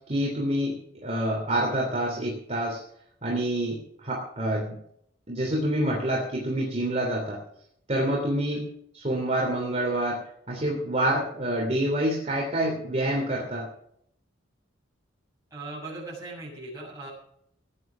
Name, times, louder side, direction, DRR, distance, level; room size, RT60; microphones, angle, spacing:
voice 1, 0.1-0.7 1.0-2.8 3.2-4.8 5.3-7.4 7.9-8.7 8.9-10.2 10.5-13.7, right 1 dB, 35° right, -2 dB, 3.1 m, -27 dB
voice 2, 15.5-17.1, right 2 dB, 15° right, -6 dB, 7.1 m, -39 dB
17.0 x 10.0 x 6.1 m, 0.71 s
head